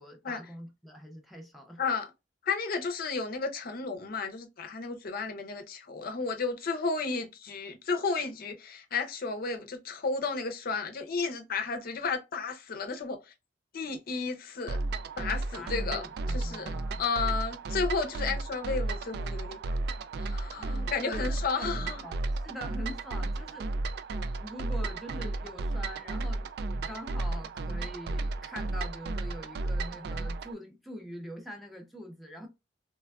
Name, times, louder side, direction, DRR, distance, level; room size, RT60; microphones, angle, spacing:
voice 1, 0.0-2.0 15.5-17.0 20.6-23.7 24.4-32.5, equal, ahead, 0.5 m, -44 dB
voice 2, 2.5-13.2 13.7-14.8 15.2-16.0 16.3-16.7 17.0-19.7 20.2-22.0, left 4 dB, 55° left, 0.5 m, -33 dB
sound 1, 14.7-30.5, right 2 dB, 60° right, 0.3 m, -33 dB
3.2 x 2.2 x 2.2 m
head